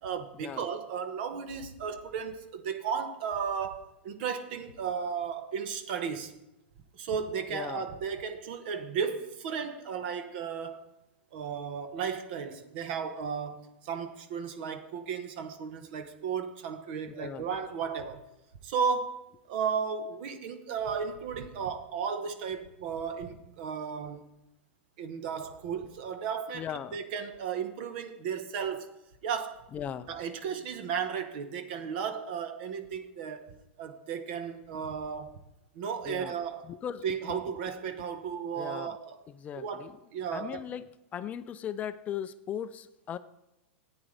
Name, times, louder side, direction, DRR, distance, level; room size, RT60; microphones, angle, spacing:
voice 1, 0.0-6.3 6.9-10.8 11.3-18.2 18.6-24.2 25.0-28.9 29.2-29.7 30.1-35.4 35.7-36.7 37.0-39.2 39.5-40.6, right 6 dB, 55° right, 1.1 m, -34 dB
voice 2, 7.5-7.8 17.1-17.5 26.5-27.0 29.7-30.1 36.1-36.3 36.7-37.4 38.5-39.0 39.4-39.9 40.3-40.9 41.1-43.2, left 9 dB, 25° left, 0.4 m, -38 dB
13.5 x 9.0 x 3.3 m
hypercardioid pair, 135°, 6 cm